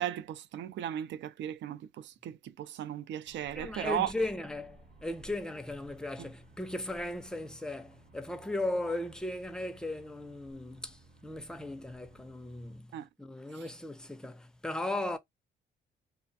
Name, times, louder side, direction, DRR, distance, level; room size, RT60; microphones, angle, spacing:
voice 1, 0.0-4.1 6.2-6.3 12.9-13.1 13.6-13.7, right 11 dB, 65° right, 0.4 m, -36 dB
sound 1, 3.2-12.8, right 1 dB, 45° right, 0.9 m, -56 dB
voice 2, 3.5-12.9 13.2-15.2, left 2 dB, 5° left, 0.4 m, -37 dB
2.4 x 2.1 x 2.6 m
cardioid pair, 90°, 20 cm